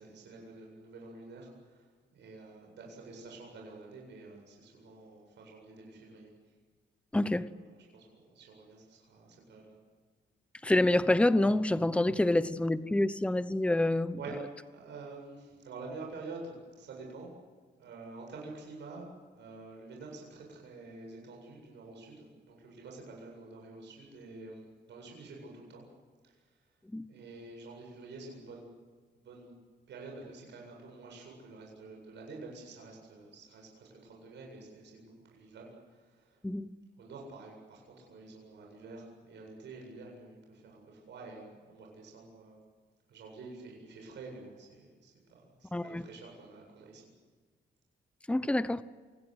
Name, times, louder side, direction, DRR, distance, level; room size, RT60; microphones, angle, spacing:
voice 1, 0.0-6.3 7.1-9.8 14.2-14.4 14.7-17.3 17.7-19.1 19.3-25.8 26.2-26.6 27.1-28.6 29.2-29.5 29.9-36.4 37.0-42.6 43.1-47.0, right 3 dB, 80° right, 8.0 m, -48 dB
voice 2, 7.1-7.5 10.6-14.2 26.9-27.1 36.4-36.7 45.7-46.1 48.3-48.8, left 1 dB, 5° left, 0.9 m, -27 dB
27.5 x 20.0 x 8.1 m
cardioid pair, 120°, 18 cm